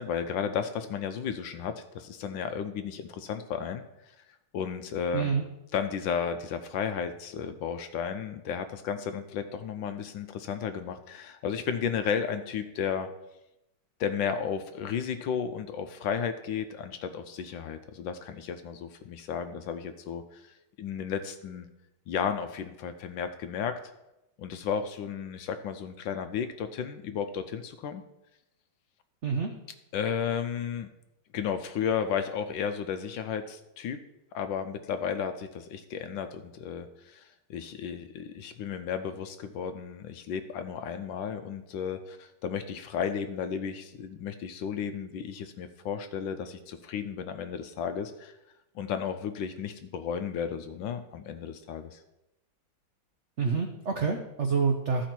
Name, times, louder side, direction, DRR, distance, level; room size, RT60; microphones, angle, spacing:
voice 1, 0.0-3.8 4.5-5.3 5.7-13.1 14.0-21.7 22.1-23.8 24.4-28.0 29.9-30.9 31.3-34.0 34.3-48.4 48.7-52.0, left 7 dB, 75° left, 8 dB, 1.3 m, -33 dB
voice 2, 5.1-5.4 29.2-29.5 53.4-55.1, right 5 dB, 70° right, 3 dB, 0.6 m, -27 dB
14.0 x 5.1 x 4.4 m, 0.91 s
omnidirectional pair, 2.2 m